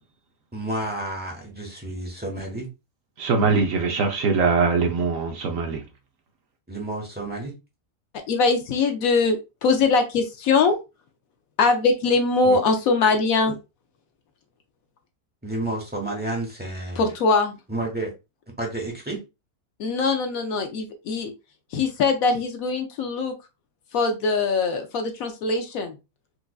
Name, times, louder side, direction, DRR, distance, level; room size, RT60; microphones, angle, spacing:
voice 1, 0.5-2.7 6.7-7.5 12.4-12.6 15.4-17.1 17.7-18.1 18.6-19.2, right 2 dB, 5° right, 0.9 m, -30 dB
voice 2, 3.2-5.8, right 4 dB, 65° right, 0.9 m, -22 dB
voice 3, 8.3-10.8 11.6-13.5 17.0-17.6 19.8-21.3 21.7-23.3 23.9-25.9, left 4 dB, 70° left, 1.0 m, -22 dB
4.6 x 2.4 x 2.3 m
omnidirectional pair, 1.6 m